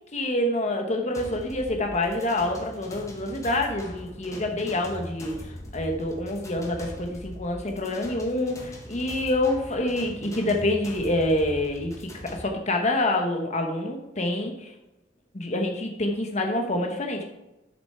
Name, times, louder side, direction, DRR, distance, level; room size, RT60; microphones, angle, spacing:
voice 1, 0.1-14.7 15.3-17.2, left 1 dB, 40° left, 3 dB, 1.1 m, -27 dB
sound 1, 1.1-12.4, left 1 dB, 20° left, 1.6 m, -41 dB
11.0 x 6.6 x 4.3 m, 0.96 s
head